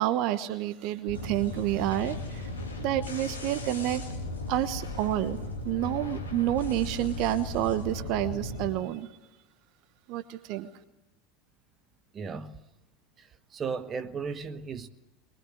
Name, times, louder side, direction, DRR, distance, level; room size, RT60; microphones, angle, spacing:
voice 1, 0.0-2.5 2.8-4.0 4.5-5.4 5.6-9.1 10.1-10.7, right 13 dB, 55° right, 1.1 m, -29 dB
sound 1, 1.1-8.7, left 2 dB, 80° left, 2.6 m, -36 dB
voice 2, 12.1-12.6 13.2-13.3 13.5-14.9, right 5 dB, 30° right, 1.2 m, -35 dB
23.0 x 20.5 x 8.5 m
figure-of-eight pair, 80°, 0 cm